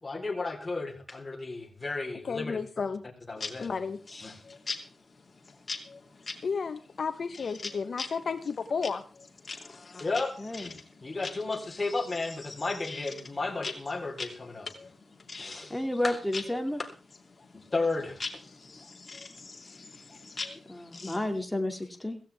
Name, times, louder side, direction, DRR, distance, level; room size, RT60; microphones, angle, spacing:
voice 1, 0.0-2.6 3.3-3.7 4.1-4.4 10.0-14.7 15.3-15.8 16.0-16.2 16.8-16.9 17.5-18.2, left 3 dB, 30° left, 1 dB, 3.9 m, -33 dB
voice 2, 2.2-3.0 3.6-4.0 6.4-9.0, left 5 dB, 65° left, 9 dB, 1.0 m, -32 dB
sound 1, 3.4-21.4, left 4 dB, 45° left, 2.8 m, -43 dB
voice 3, 10.4-10.7 15.7-16.8 20.7-22.2, left 1 dB, 10° left, 4 dB, 2.4 m, -31 dB
16.5 x 16.0 x 3.5 m, 0.35 s
cardioid pair, 75°, 0 cm